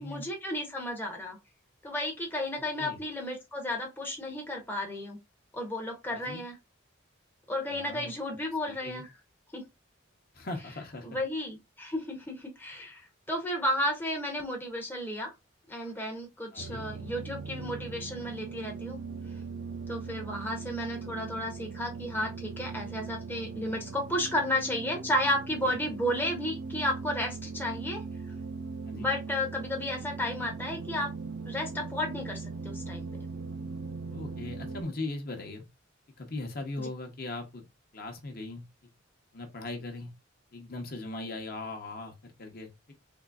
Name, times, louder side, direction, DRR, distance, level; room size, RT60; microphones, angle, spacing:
voice 1, 0.0-1.4 1.8-5.2 5.5-6.6 7.5-9.1 9.5-9.6 11.0-15.3 15.7-19.0 19.9-28.0 28.9-31.1 31.4-33.1, left 1 dB, 10° left, 0.7 m, -33 dB
voice 2, 6.1-6.4 7.6-8.1 8.7-9.0 10.3-11.2 16.5-16.8 25.6-25.8 28.8-29.1 34.1-35.6 36.2-37.6 37.9-38.6 39.3-40.1 40.5-42.9, left 2 dB, 50° left, 0.8 m, -39 dB
sound 1, 16.6-34.8, right 4 dB, 70° right, 0.6 m, -40 dB
3.8 x 3.0 x 2.3 m
head